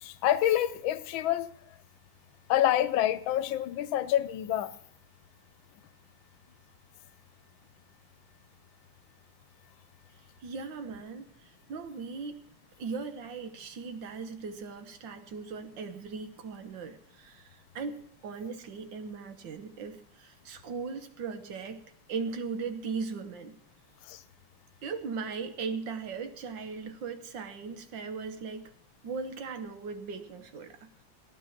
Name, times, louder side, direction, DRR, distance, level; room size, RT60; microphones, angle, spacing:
voice 1, 0.0-1.5 2.5-4.7 24.0-24.2, left 12 dB, 90° left, 1.5 m, -27 dB
voice 2, 10.4-12.4 12.8-21.8 22.1-23.6 24.8-28.7 29.0-31.0, right 5 dB, 70° right, 1.8 m, -38 dB
15.5 x 10.5 x 5.9 m
omnidirectional pair, 2.1 m